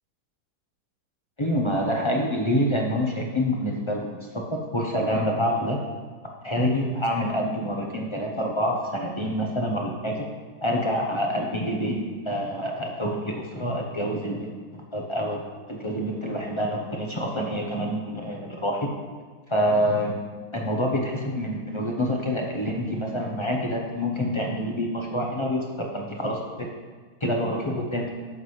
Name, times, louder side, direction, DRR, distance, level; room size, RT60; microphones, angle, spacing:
voice 1, 1.4-5.8 6.4-10.3 10.6-12.0 12.2-14.5 14.9-15.4 15.7-18.9 19.5-20.2 20.5-26.7 27.2-28.1, equal, 25° left, 0 dB, 0.7 m, -27 dB
10.5 x 7.3 x 3.2 m, 1.5 s
omnidirectional pair, 1.7 m